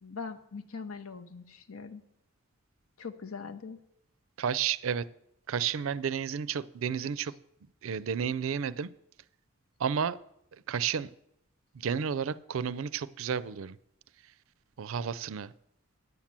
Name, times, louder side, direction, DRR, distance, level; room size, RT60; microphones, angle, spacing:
voice 1, 0.0-2.0 3.0-3.8, left 5 dB, 85° left, 8 dB, 0.9 m, -41 dB
voice 2, 4.4-5.1 5.5-7.3 7.8-8.9 9.8-10.2 10.7-11.1 11.7-13.8 14.8-15.5, right 7 dB, 75° right, 19 dB, 0.4 m, -31 dB
9.5 x 7.4 x 7.3 m, 0.77 s
head